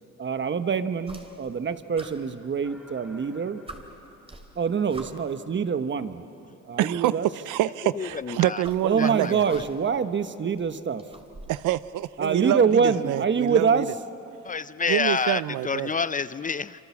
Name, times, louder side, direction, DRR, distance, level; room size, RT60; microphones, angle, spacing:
voice 1, 0.2-3.6 4.5-6.2 6.6-7.3 8.8-11.0 12.2-13.9, right 6 dB, 40° right, 11 dB, 1.2 m, -25 dB
sound 1, 1.0-1.6 1.9-3.0 3.3-3.4 3.7-5.4 6.5-6.6 7.9-10.0 10.3-11.8, right 2 dB, 20° right, 3.0 m, -46 dB
sound 2, 2.6-5.3, left 1 dB, 5° right, 2.9 m, -55 dB
voice 2, 6.8-7.1 7.5-9.4 11.5-12.6 13.0-13.8 14.9-15.9, right 14 dB, 85° right, 17 dB, 0.6 m, -26 dB
voice 3, 7.8-8.6 9.0-9.6 14.4-16.8, left 5 dB, 25° left, 15 dB, 0.5 m, -29 dB
26.5 x 26.5 x 7.2 m, 2.7 s
cardioid pair, 90°, 30 cm